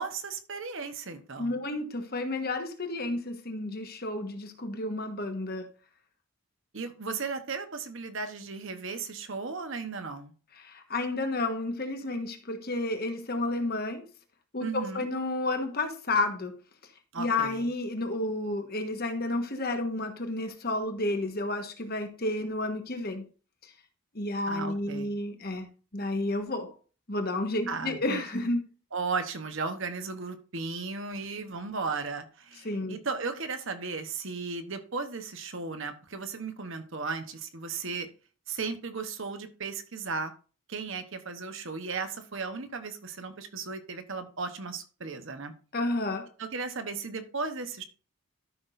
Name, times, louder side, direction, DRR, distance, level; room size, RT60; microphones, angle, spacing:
voice 1, 0.0-1.6 6.7-10.3 14.6-15.1 17.1-17.6 24.5-25.1 27.7-28.0 28.9-38.1 38.5-40.3 40.7-45.5 46.4-47.8, right 4 dB, 55° right, 1.1 m, -35 dB
voice 2, 1.4-5.7 10.6-14.1 14.5-16.6 17.2-23.3 24.1-25.7 25.9-26.7 27.1-28.7 32.6-33.0 45.7-46.3, left 2 dB, 45° left, 1.4 m, -31 dB
13.0 x 6.1 x 2.6 m
head